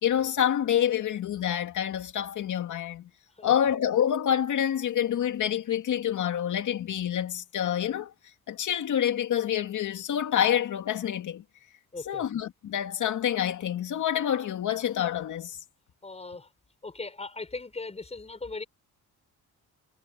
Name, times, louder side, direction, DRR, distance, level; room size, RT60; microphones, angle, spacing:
voice 1, 0.0-3.1 3.4-8.1 8.5-11.4 12.1-15.6, left 10 dB, 65° left, 2.5 m, -27 dB
voice 2, 11.9-12.2 16.0-16.5 16.8-18.6, left 3 dB, 20° left, 5.9 m, -38 dB
cardioid pair, 145°, 32 cm